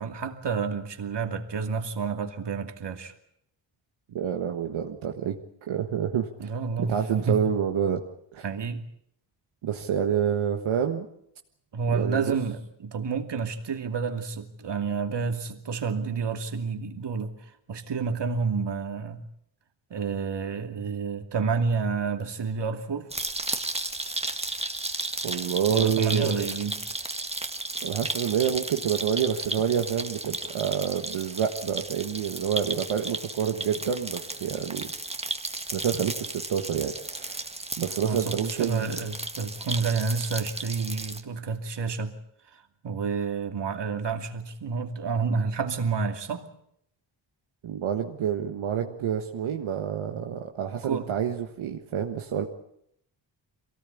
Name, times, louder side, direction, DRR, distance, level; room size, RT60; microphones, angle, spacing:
voice 1, 0.0-3.1 6.4-7.4 8.4-8.8 11.7-17.3 17.7-19.2 19.9-23.1 25.7-26.8 38.0-42.1 42.5-46.5 50.8-51.1, right 5 dB, 60° right, 5 dB, 2.7 m, -29 dB
voice 2, 4.1-5.4 5.7-6.3 6.8-8.0 8.3-8.4 9.6-11.1 11.9-12.3 25.2-26.3 27.8-34.9 35.7-37.5 37.8-39.0 47.6-52.5, right 8 dB, 90° right, 3 dB, 1.6 m, -28 dB
sound 1, 23.1-41.2, right 2 dB, 15° right, 1.8 m, -34 dB
23.5 x 18.0 x 8.5 m, 0.73 s
cardioid pair, 75°, 46 cm